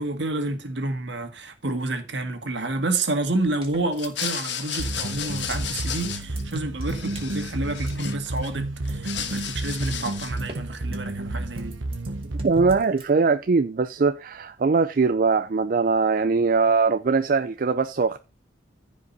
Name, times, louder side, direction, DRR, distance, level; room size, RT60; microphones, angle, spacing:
voice 1, 0.0-11.7, right 2 dB, 65° right, 1.8 m, -29 dB
sound 1, 3.3-13.1, right 2 dB, 30° right, 2.5 m, -44 dB
sound 2, 3.9-6.6 6.8-8.5 8.8-10.5, left 8 dB, 65° left, 1.4 m, -34 dB
sound 3, 4.8-12.8, right 2 dB, 85° right, 1.1 m, -31 dB
voice 2, 12.4-18.2, right 4 dB, 45° right, 0.4 m, -21 dB
14.5 x 5.1 x 4.0 m
head